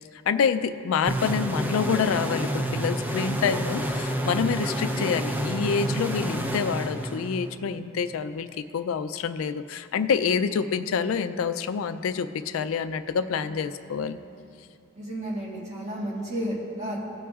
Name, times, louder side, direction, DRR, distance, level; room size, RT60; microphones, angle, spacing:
voice 1, 0.3-14.2, left 6 dB, 75° left, 11 dB, 0.4 m, -27 dB
sound 1, 1.1-7.6, right 1 dB, 10° right, 0.5 m, -29 dB
voice 2, 10.5-10.8 13.4-14.0 14.9-17.0, right 1 dB, 35° right, -4 dB, 1.7 m, -33 dB
18.0 x 6.1 x 2.4 m, 2.6 s
head